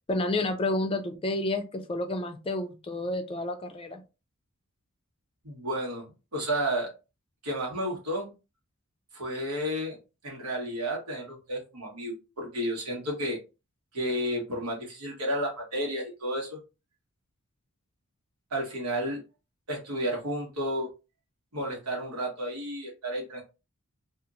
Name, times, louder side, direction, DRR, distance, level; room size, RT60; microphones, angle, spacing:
voice 1, 0.1-4.0, left 2 dB, 25° left, 6 dB, 0.4 m, -30 dB
voice 2, 5.4-6.1 6.3-6.9 7.4-8.3 9.1-10.0 10.2-13.4 13.9-16.6 18.5-19.2 19.7-20.9 21.5-23.4, equal, 90° right, 0 dB, 1.2 m, -32 dB
2.9 x 2.5 x 2.4 m, 0.29 s
head